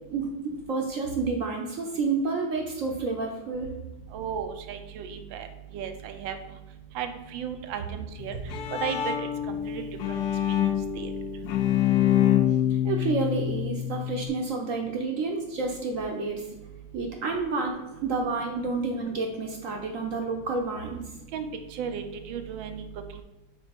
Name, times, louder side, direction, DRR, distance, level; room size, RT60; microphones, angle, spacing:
voice 1, 0.1-3.7 12.8-16.4 16.9-21.0, right 4 dB, 60° right, 2 dB, 0.9 m, -29 dB
voice 2, 4.1-5.5 5.7-6.4 6.9-8.4 8.7-9.1 9.5-10.2 10.5-10.7 11.0-11.1 21.3-22.8 23.2-23.3, right 7 dB, 85° right, 7 dB, 1.4 m, -35 dB
Bowed string instrument, 8.2-14.3, left 11 dB, 70° left, 1.1 m, -26 dB
5.0 x 4.1 x 5.0 m, 1.0 s
omnidirectional pair, 2.1 m